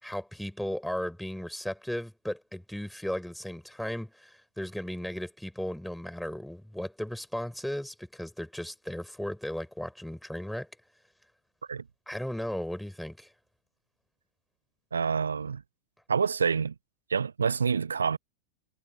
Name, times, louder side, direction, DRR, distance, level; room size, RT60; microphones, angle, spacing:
voice 1, 0.0-10.7 12.1-13.3, left 1 dB, ahead, 5.7 m, -36 dB
voice 2, 14.9-15.6 16.1-16.7 17.1-18.2, right 6 dB, 70° right, 0.5 m, -27 dB
figure-of-eight pair, 90°, 0 cm